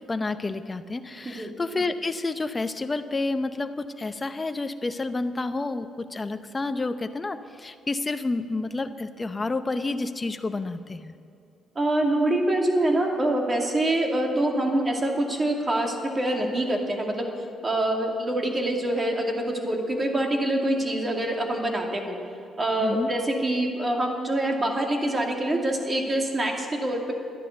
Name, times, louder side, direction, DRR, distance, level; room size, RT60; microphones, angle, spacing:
voice 1, 0.1-11.1 22.8-23.1, left 3 dB, 25° left, 9 dB, 0.7 m, -29 dB
voice 2, 11.8-17.3 17.6-22.2 22.6-27.1, right 1 dB, 30° right, 1 dB, 2.4 m, -25 dB
12.0 x 10.5 x 7.9 m, 2.6 s
cardioid pair, 90°, 0 cm